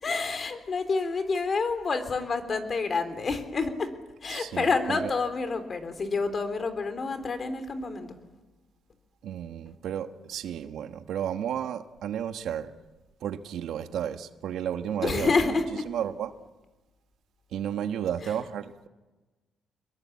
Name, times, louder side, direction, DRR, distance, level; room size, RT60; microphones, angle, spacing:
voice 1, 0.0-3.9 4.2-8.2 15.0-15.9 18.2-18.3, left 4 dB, 40° left, 10 dB, 3.6 m, -28 dB
voice 2, 4.3-5.1 9.2-12.7 13.2-15.5 15.9-16.3 17.5-18.9, right 9 dB, 75° right, 9 dB, 1.4 m, -33 dB
25.5 x 22.0 x 8.5 m, 1.2 s
cardioid pair, 90°, 0 cm